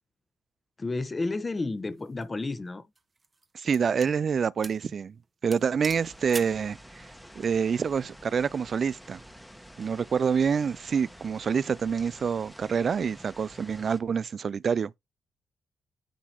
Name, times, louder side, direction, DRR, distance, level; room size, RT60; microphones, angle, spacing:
voice 1, 0.8-2.9, left 3 dB, 30° left, 1.1 m, -31 dB
sound 1, 1.9-2.2 3.0-4.2 4.6-4.9 5.2-5.3 5.5-6.6, right 3 dB, 35° right, 1.1 m, -42 dB
voice 2, 3.5-5.1 5.4-7.1 7.4-9.2 9.8-14.9, right 6 dB, 55° right, 0.3 m, -27 dB
sound 2, 5.9-14.0, equal, ahead, 1.3 m, -49 dB
10.0 x 3.9 x 3.0 m
supercardioid pair, 55°, 0 cm